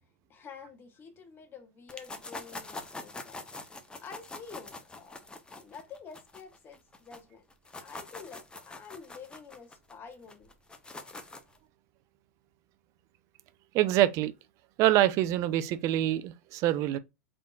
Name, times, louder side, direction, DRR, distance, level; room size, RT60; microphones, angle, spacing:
voice 1, 0.3-3.4 4.0-5.2 5.6-7.4 7.8-10.5, left 6 dB, 30° left, 1.2 m, -48 dB
sound 1, 1.9-7.2 7.5-11.6, left 3 dB, 10° left, 0.7 m, -44 dB
voice 2, 13.7-14.3 14.8-17.0, right 13 dB, 45° right, 0.4 m, -25 dB
3.8 x 3.6 x 2.2 m
hypercardioid pair, 95°, 7 cm